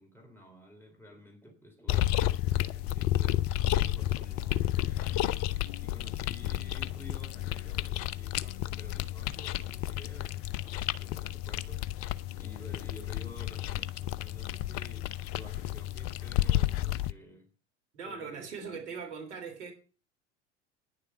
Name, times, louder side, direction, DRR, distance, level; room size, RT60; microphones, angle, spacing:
voice 1, 0.0-5.4 5.8-17.5 18.0-19.0, equal, 5° left, 3.6 m, -52 dB
sound 1, 1.9-17.1, left 14 dB, 40° left, 0.6 m, -31 dB
voice 2, 17.9-19.7, right 5 dB, 70° right, 3.5 m, -40 dB
10.0 x 6.8 x 7.9 m
figure-of-eight pair, 75°, 35 cm